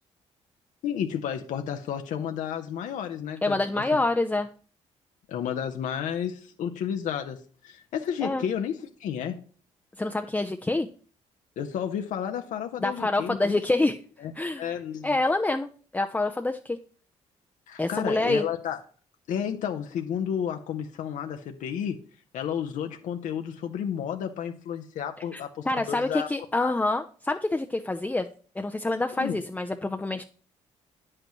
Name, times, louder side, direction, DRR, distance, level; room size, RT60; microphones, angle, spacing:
voice 1, 0.8-3.8 5.3-9.4 11.6-13.6 14.2-15.1 17.7-18.8 19.3-22.0 22.3-26.3 26.6-26.7 29.1-29.4, left 8 dB, 75° left, 5 dB, 0.8 m, -32 dB
voice 2, 3.4-4.5 8.2-8.4 10.0-10.9 12.8-14.0 14.3-14.7 15.0-16.8 17.8-18.4 25.3-25.4 25.7-28.3 28.6-30.2, left 2 dB, 10° left, 5 dB, 0.5 m, -26 dB
8.8 x 7.6 x 3.1 m, 0.42 s
cardioid pair, 80°, 13 cm